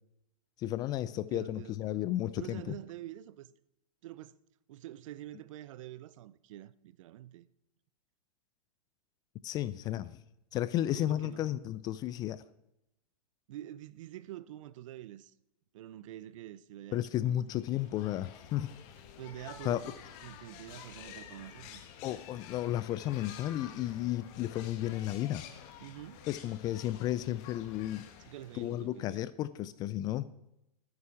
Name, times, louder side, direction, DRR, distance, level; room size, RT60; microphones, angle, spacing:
voice 1, 0.6-2.6 9.4-10.2 10.5-12.4 16.9-18.7 19.6-19.8 22.0-25.4 26.3-28.1 28.6-30.3, left 13 dB, 20° left, 0.3 m, -33 dB
voice 2, 1.1-2.0 2.4-3.5 4.0-4.4 4.7-7.5 10.9-11.5 13.5-15.3 15.7-17.8 19.2-19.9 20.2-21.8 25.8-26.3 28.2-29.3, right 13 dB, 55° right, 0.6 m, -47 dB
sound 1, 17.5-29.1, left 9 dB, 40° left, 1.5 m, -50 dB
11.5 x 9.6 x 5.9 m
hypercardioid pair, 130°, 20 cm